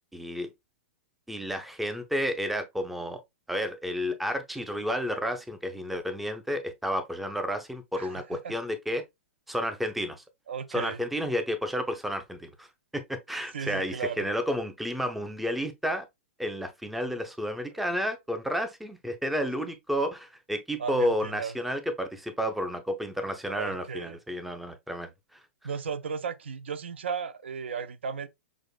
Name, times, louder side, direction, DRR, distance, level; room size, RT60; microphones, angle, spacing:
voice 1, 0.1-0.5 1.3-3.2 3.5-9.0 9.5-10.2 10.7-12.7 12.9-16.1 16.4-25.4, equal, ahead, 0.4 m, -31 dB
voice 2, 7.9-8.5 10.5-11.0 13.5-14.3 20.8-21.5 23.6-24.2 25.6-28.3, right 6 dB, 60° right, 0.4 m, -35 dB
5.8 x 2.5 x 2.3 m
figure-of-eight pair, 105°, 7 cm